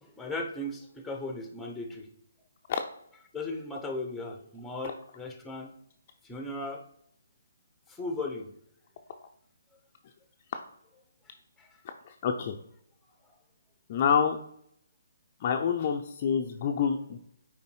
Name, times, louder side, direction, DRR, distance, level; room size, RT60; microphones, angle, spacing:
voice 1, 0.0-2.1 3.3-5.7 6.2-6.8 7.9-8.5 11.6-11.7, left 2 dB, 5° left, 4 dB, 1.0 m, -36 dB
voice 2, 12.1-12.6 13.9-14.4 15.4-17.2, left 7 dB, 40° left, 3 dB, 0.6 m, -27 dB
5.4 x 4.7 x 4.6 m, 0.71 s
figure-of-eight pair, 145°, 0 cm